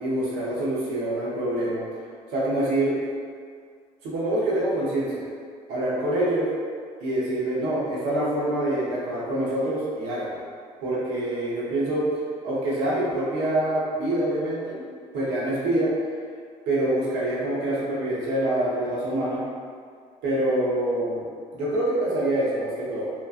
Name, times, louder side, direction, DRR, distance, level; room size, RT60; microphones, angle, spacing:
voice 1, 0.0-1.9 2.3-2.9 4.0-5.3 5.7-6.5 7.0-10.4 10.8-12.1 12.4-14.8 15.1-15.9 16.7-19.4 20.2-21.3 21.5-23.1, right 1 dB, 80° right, -7 dB, 0.8 m, -25 dB
2.9 x 2.2 x 2.4 m, 2.1 s
hypercardioid pair, 60°, 17 cm